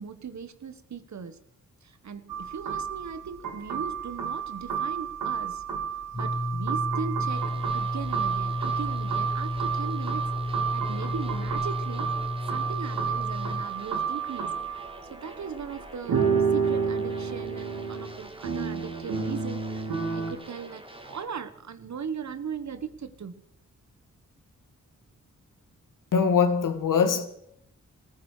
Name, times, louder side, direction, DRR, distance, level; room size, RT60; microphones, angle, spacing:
voice 1, 0.0-1.4 1.8-5.6 6.1-12.1 12.5-23.4, right 6 dB, 60° right, 1.4 m, -39 dB
sound 1, 2.3-15.0 15.7-15.8 16.1-20.3, right 6 dB, 85° right, 2.3 m, -30 dB
sound 2, 6.1-13.6, left 1 dB, 15° left, 1.3 m, -32 dB
sound 3, 7.3-21.3, right 1 dB, 15° right, 2.3 m, -46 dB
voice 2, 26.1-27.3, left 6 dB, 80° left, 1.9 m, -22 dB
19.0 x 15.0 x 5.0 m
cardioid pair, 60°, 32 cm